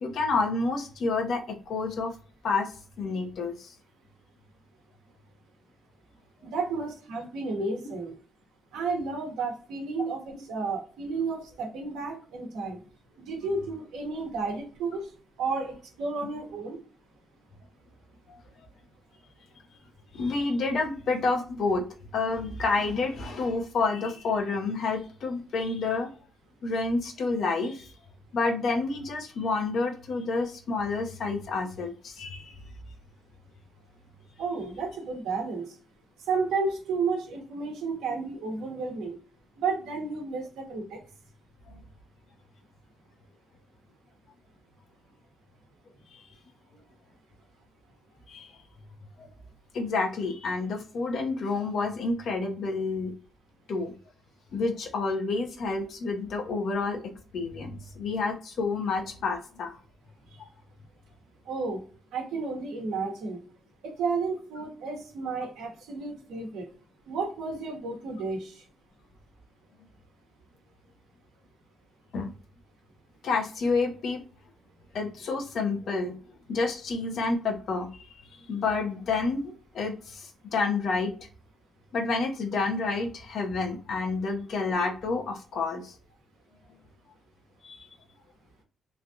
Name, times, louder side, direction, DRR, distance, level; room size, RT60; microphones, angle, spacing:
voice 1, 0.0-2.1 2.4-3.7 18.3-18.4 20.1-21.8 22.1-26.1 26.6-27.9 28.3-32.6 41.7-41.8 46.1-46.2 48.3-48.5 49.2-49.3 49.7-53.1 53.7-53.9 54.5-59.8 60.4-60.5 72.1-72.3 73.2-74.2 74.9-76.2 76.5-77.9 78.5-81.2 81.9-85.9 87.6-87.9, left 3 dB, 65° left, 3 dB, 0.7 m, -29 dB
voice 2, 6.4-8.1 8.7-12.8 13.2-15.1 15.4-16.8 34.4-35.8 36.3-39.2 39.6-41.0 60.3-60.4 61.5-61.8 62.1-63.4 63.8-66.7 67.1-68.6, right 4 dB, 85° right, 2 dB, 1.0 m, -32 dB
3.2 x 2.4 x 2.6 m, 0.40 s
cardioid pair, 90°, 0 cm